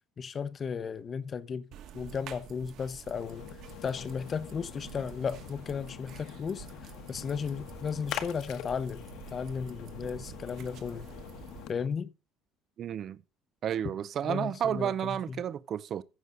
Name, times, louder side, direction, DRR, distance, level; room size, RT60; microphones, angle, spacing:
voice 1, 0.2-1.7 1.9-3.4 3.8-9.0 9.3-11.1 11.7-12.1 14.2-15.4, left 6 dB, 30° left, 0.8 m, -35 dB
sound 1, 1.7-11.7, right 10 dB, 60° right, 1.8 m, -48 dB
Splash splatter, 3.2-11.9, left 11 dB, 65° left, 1.4 m, -45 dB
voice 2, 12.8-13.2 13.6-16.0, right 9 dB, 40° right, 0.6 m, -31 dB
14.5 x 6.5 x 3.9 m
cardioid pair, 155°, 0 cm